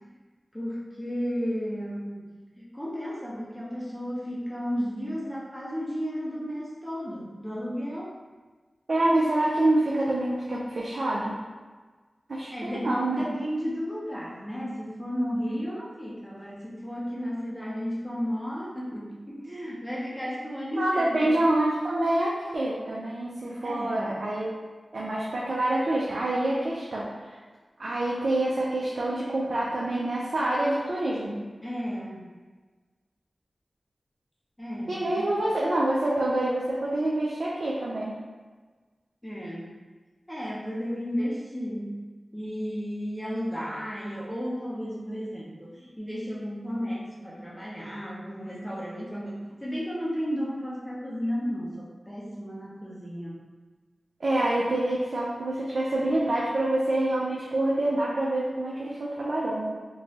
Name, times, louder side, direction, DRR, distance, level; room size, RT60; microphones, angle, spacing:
voice 1, 0.5-2.3 2.6-8.1 12.5-21.5 23.6-24.1 31.6-32.3 34.6-35.3 39.2-39.8 40.3-41.9 42.3-53.4, equal, 10° left, -6 dB, 0.6 m, -33 dB
voice 2, 8.9-11.3 12.3-13.3 20.7-24.5 24.9-27.1 27.8-31.4 34.9-38.1 54.2-59.7, right 1 dB, 75° right, -5 dB, 0.4 m, -26 dB
3.0 x 2.2 x 2.7 m, 1.4 s
cardioid pair, 45°, 0 cm